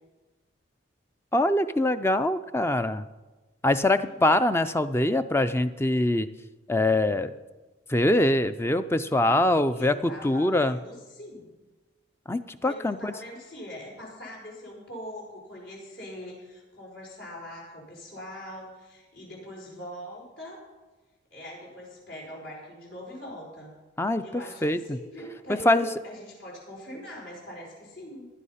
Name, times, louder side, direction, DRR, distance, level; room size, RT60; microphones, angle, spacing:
voice 1, 1.3-3.1 3.6-6.3 6.7-7.3 7.9-10.8 12.3-13.1 24.0-25.0 25.5-25.9, left 1 dB, 10° left, 11 dB, 0.4 m, -24 dB
voice 2, 4.0-4.3 9.7-11.5 12.6-20.6 21.3-23.7 24.2-28.3, equal, 70° left, -3 dB, 4.9 m, -42 dB
16.5 x 11.0 x 5.6 m, 1.2 s
head